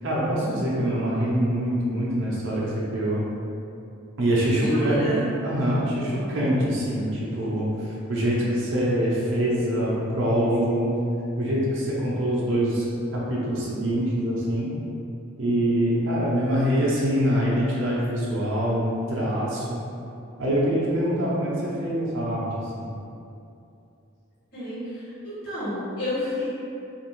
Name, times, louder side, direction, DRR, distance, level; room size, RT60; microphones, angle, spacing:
voice 1, 0.0-3.2 4.2-5.0 5.4-10.9 11.4-12.9 13.1-14.7 15.4-19.8 20.4-22.4 22.7-22.9, equal, 60° right, -6 dB, 0.6 m, -24 dB
voice 2, 4.6-5.2 7.0-7.1 24.5-26.5, left 1 dB, 50° left, -12 dB, 1.3 m, -29 dB
2.7 x 2.5 x 3.0 m, 2.6 s
head